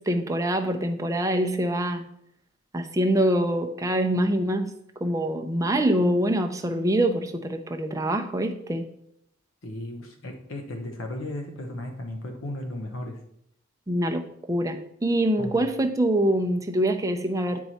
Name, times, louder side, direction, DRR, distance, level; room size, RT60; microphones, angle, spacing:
voice 1, 0.1-2.0 2.7-4.7 5.0-8.9 13.9-17.6, right 1 dB, 15° right, 4 dB, 0.6 m, -25 dB
voice 2, 9.6-13.2 15.4-15.7, left 1 dB, 75° left, 4 dB, 1.0 m, -35 dB
9.1 x 4.6 x 4.2 m, 0.74 s
head